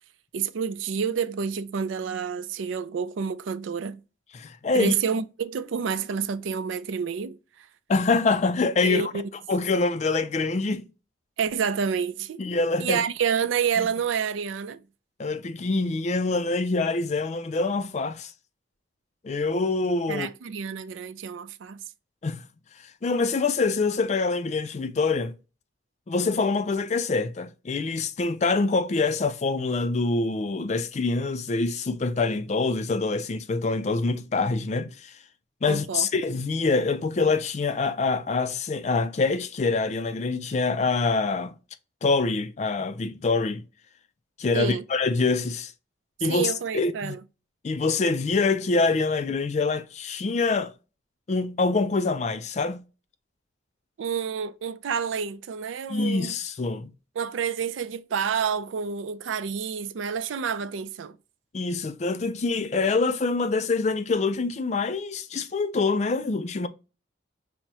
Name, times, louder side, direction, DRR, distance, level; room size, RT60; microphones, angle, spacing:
voice 1, 0.3-4.0 4.7-7.7 8.8-9.3 11.4-12.4 12.8-14.8 20.1-21.8 35.7-36.1 44.5-44.8 46.2-47.2 54.0-56.4 57.2-61.2, right 6 dB, 85° right, 0.4 m, -29 dB
voice 2, 4.3-4.9 7.9-9.0 9.5-10.9 12.4-13.0 13.8-13.9 15.2-18.3 19.2-20.3 22.2-22.4 23.0-25.4 26.1-35.1 35.6-41.5 42.0-43.6 44.4-45.7 46.2-47.2 47.6-50.7 51.3-52.8 55.9-56.9 61.5-66.7, left 3 dB, 35° left, 0.3 m, -25 dB
5.9 x 2.1 x 2.7 m
head